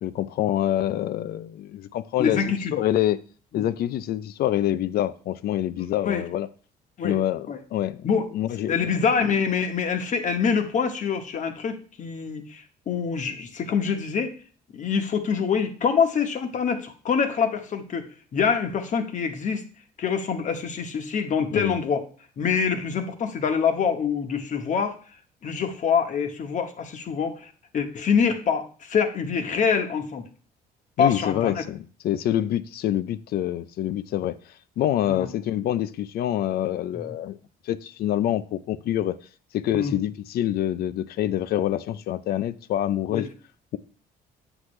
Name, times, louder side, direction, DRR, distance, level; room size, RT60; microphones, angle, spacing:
voice 1, 0.0-2.4 2.7-3.2 3.5-6.5 7.0-9.2 21.5-21.8 31.0-34.4 34.8-37.4 37.7-39.2 39.5-43.3, left 12 dB, 65° left, 0.6 m, -26 dB
voice 2, 2.2-2.7 3.5-3.7 5.8-6.2 7.0-7.2 7.5-7.6 8.0-8.3 8.7-14.3 14.7-19.6 20.0-22.0 22.4-25.0 25.4-30.3 31.0-31.6 35.1-35.3 36.9-37.0 39.7-40.0 43.1-43.3, left 6 dB, 45° left, 1.3 m, -25 dB
8.1 x 7.5 x 3.3 m
cardioid pair, 110°, 17 cm